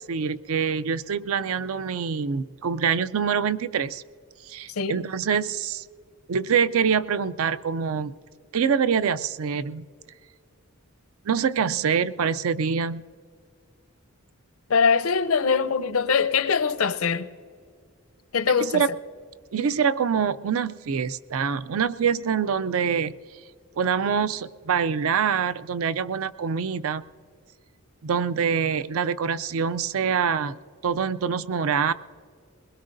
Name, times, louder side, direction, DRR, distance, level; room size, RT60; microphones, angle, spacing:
voice 1, 0.0-4.0 4.5-5.8 6.3-8.1 8.5-9.9 11.3-13.0 18.7-18.9 19.5-23.2 23.8-27.0 28.0-30.6 30.8-31.9, right 6 dB, 70° right, 0.4 m, -25 dB
voice 2, 4.7-5.0 14.7-17.3 18.3-18.8, left 5 dB, 75° left, 0.6 m, -22 dB
21.5 x 20.5 x 2.6 m
head